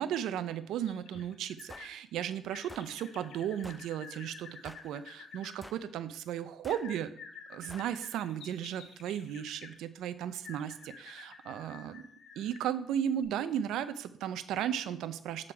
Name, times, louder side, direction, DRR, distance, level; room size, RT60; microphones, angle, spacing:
voice 1, 0.0-7.1 7.5-12.0 12.4-15.5, right 10 dB, 85° right, 12 dB, 0.4 m, -35 dB
sound 1, 0.8-1.9 2.5-5.5 6.7-9.8 10.4-12.7 13.2-13.3, left 5 dB, 70° left, 0.9 m, -51 dB
sound 2, 1.7-1.9 2.7-2.9 3.6-3.9 4.7-4.9 5.6-5.9 6.6-6.9 7.7-7.9, equal, 5° left, 0.4 m, -49 dB
7.7 x 3.7 x 4.4 m, 0.65 s
cardioid pair, 90°, 0 cm